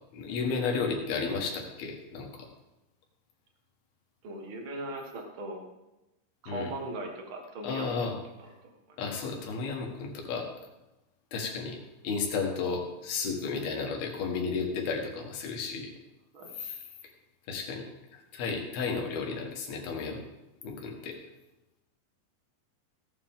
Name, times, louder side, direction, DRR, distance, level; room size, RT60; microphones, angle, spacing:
voice 1, 0.1-2.5 6.5-6.7 7.6-8.2 9.0-10.5 11.3-11.8 12.0-15.9 16.6-16.8 17.5-17.9 18.1-20.2 20.6-21.2, left 5 dB, 85° left, 1 dB, 3.6 m, -33 dB
voice 2, 4.2-5.7 6.4-8.2 8.6-9.0 16.3-16.6, right 2 dB, 45° right, 2 dB, 1.9 m, -39 dB
16.0 x 9.7 x 3.7 m, 0.97 s
omnidirectional pair, 4.3 m